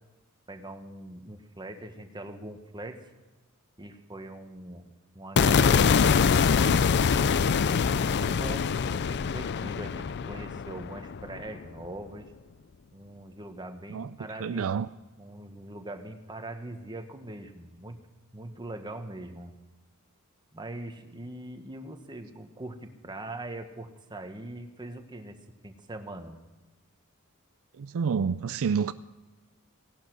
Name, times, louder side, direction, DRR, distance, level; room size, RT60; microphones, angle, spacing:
voice 1, 0.5-3.0 3.8-6.9 7.6-12.3 12.9-14.7 15.2-18.0 18.3-19.5 20.5-25.4 25.6-26.3, right 1 dB, 20° right, 1.4 m, -41 dB
sound 1, 5.4-11.6, left 6 dB, 50° left, 0.4 m, -24 dB
voice 2, 14.4-14.9 27.7-28.9, right 6 dB, 65° right, 0.4 m, -28 dB
18.0 x 11.5 x 6.2 m
head